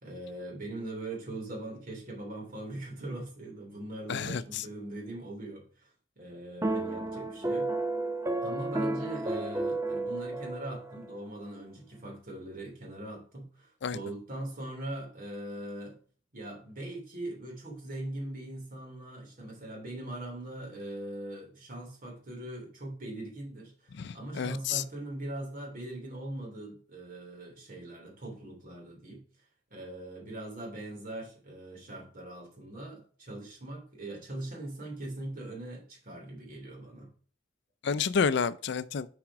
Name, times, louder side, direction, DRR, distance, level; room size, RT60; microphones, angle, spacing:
voice 1, 0.0-5.9 6.2-7.7 8.4-16.0 16.3-29.2 29.7-37.1, right 1 dB, 50° right, 3.0 m, -41 dB
voice 2, 4.1-4.6 13.8-14.0 24.0-24.8 37.8-39.1, left 6 dB, 65° left, 0.5 m, -30 dB
sound 1, 6.6-11.1, right 2 dB, 15° right, 0.5 m, -32 dB
6.0 x 5.0 x 4.7 m
head